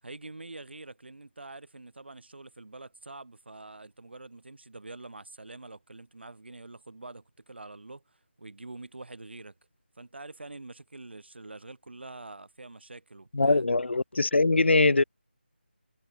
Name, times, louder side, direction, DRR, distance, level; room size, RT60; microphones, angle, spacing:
voice 1, 0.0-9.5 10.0-13.6, right 2 dB, 70° right, 8.0 m, -45 dB
voice 2, 13.3-15.0, left 3 dB, 80° left, 0.7 m, -22 dB
figure-of-eight pair, 170°, 6 cm